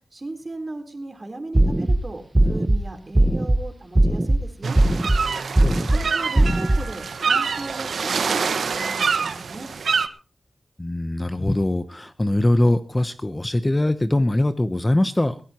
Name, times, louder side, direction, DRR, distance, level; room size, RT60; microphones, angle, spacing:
voice 1, 0.1-4.8 5.8-8.4 8.7-9.7, right 2 dB, 30° right, 5 dB, 3.8 m, -36 dB
sound 1, 1.5-2.0 2.4-2.8 3.2-3.6 4.0-4.4 4.8-5.2 5.6-6.0 6.4-6.8, right 1 dB, 15° right, 1.1 m, -18 dB
sound 2, 4.6-10.1, right 5 dB, 85° right, 1.4 m, -25 dB
voice 2, 5.6-5.9 10.8-15.4, left 1 dB, 15° left, 10 dB, 0.8 m, -22 dB
22.0 x 16.5 x 3.0 m, 0.40 s
wide cardioid pair, 130°, 0 cm